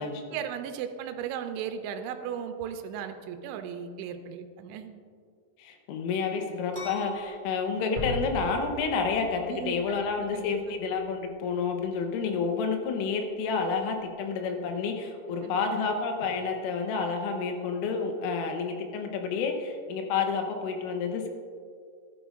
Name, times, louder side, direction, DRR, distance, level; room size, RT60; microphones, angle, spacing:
voice 1, 0.3-5.0 9.5-9.8 10.3-10.5 15.4-15.6, right 8 dB, 80° right, 7 dB, 2.8 m, -36 dB
voice 2, 5.6-21.3, left 5 dB, 85° left, 4 dB, 3.7 m, -29 dB
sound 1, 6.7-14.1, left 1 dB, 5° left, 0.7 m, -48 dB
sound 2, 8.0-10.8, equal, 40° left, 1.7 m, -38 dB
14.0 x 11.5 x 2.5 m, 2.2 s
omnidirectional pair, 5.7 m